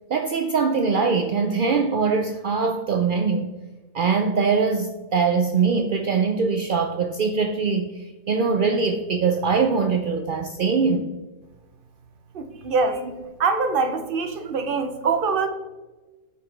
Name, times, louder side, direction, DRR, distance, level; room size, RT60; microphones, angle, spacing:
voice 1, 0.1-3.5 3.9-11.1 13.0-13.1, right 5 dB, 85° right, 5 dB, 0.4 m, -22 dB
voice 2, 12.3-13.0 13.4-15.5, right 4 dB, 50° right, 7 dB, 0.7 m, -23 dB
9.7 x 4.8 x 3.3 m, 1.2 s
omnidirectional pair, 1.5 m